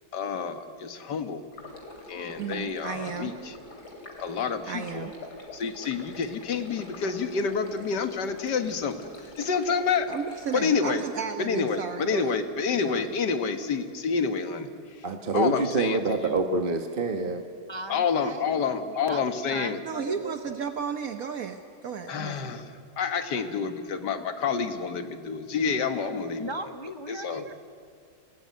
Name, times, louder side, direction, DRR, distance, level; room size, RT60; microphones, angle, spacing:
voice 1, 0.1-1.4 2.1-3.5 4.2-5.1 5.5-10.1 10.5-11.0 11.4-15.1 15.3-16.0 17.9-19.8 22.1-26.5 27.1-27.4, left 5 dB, 85° left, 8 dB, 2.0 m, -28 dB
Stream, 1.5-10.6, left 2 dB, 70° left, 3.9 m, -45 dB
voice 2, 2.4-3.4 4.7-5.1 10.1-12.3 12.9-13.1 19.8-22.5, right 6 dB, 60° right, 7 dB, 1.4 m, -34 dB
voice 3, 15.0-17.4, right 3 dB, 35° right, 5 dB, 1.3 m, -26 dB
voice 4, 17.7-20.7 26.4-27.5, right 1 dB, 35° left, 8 dB, 0.4 m, -39 dB
25.0 x 18.5 x 9.5 m, 2.3 s
omnidirectional pair, 1.8 m